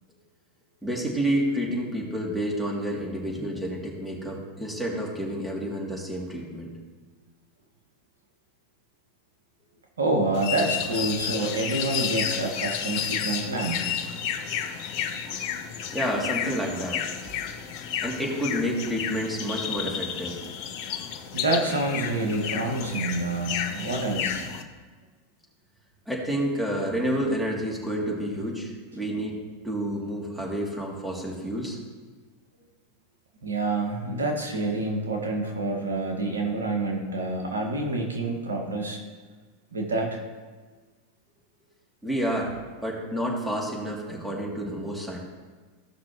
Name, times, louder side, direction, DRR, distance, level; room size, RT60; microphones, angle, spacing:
voice 1, 0.8-6.7 14.5-14.6 15.9-17.0 18.0-20.4 26.1-29.4 29.6-31.8 42.0-42.5 42.8-45.2, equal, ahead, -3 dB, 2.7 m, -29 dB
voice 2, 10.0-13.8 21.3-24.5 33.4-39.0 39.7-40.2, right 2 dB, 90° right, 1 dB, 1.7 m, -27 dB
sound 1, 10.3-24.6, left 8 dB, 55° left, 0.9 m, -32 dB
15.5 x 5.9 x 3.1 m, 1.4 s
hypercardioid pair, 95°, 0 cm